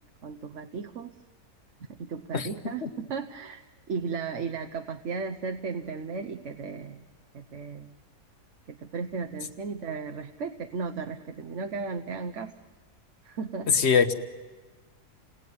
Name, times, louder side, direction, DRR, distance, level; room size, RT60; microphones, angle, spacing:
voice 1, 0.2-1.1 1.9-3.6 3.9-7.0 7.3-7.9 8.7-12.5 13.2-13.8, right 5 dB, 50° right, 5 dB, 1.2 m, -35 dB
voice 2, 13.7-14.1, left 6 dB, 45° left, 9 dB, 1.4 m, -22 dB
29.5 x 19.0 x 9.6 m, 1.3 s
omnidirectional pair, 1.7 m